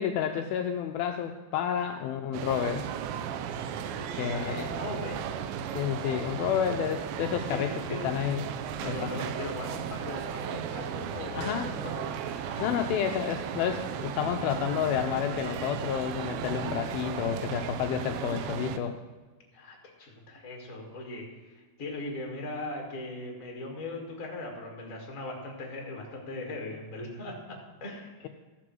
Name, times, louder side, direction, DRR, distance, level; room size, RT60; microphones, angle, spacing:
voice 1, 0.0-2.8 4.2-4.7 5.7-8.5 8.8-9.1 11.4-11.7 12.6-19.0, left 9 dB, 90° left, 5 dB, 2.1 m, -30 dB
sound 1, 2.3-18.8, right 8 dB, 85° right, 2.9 m, -35 dB
voice 2, 3.9-5.2 5.9-6.2 7.5-8.0 8.8-13.0 19.5-28.1, left 2 dB, 60° left, 0 dB, 0.8 m, -39 dB
13.5 x 6.4 x 7.6 m, 1.4 s
omnidirectional pair, 4.9 m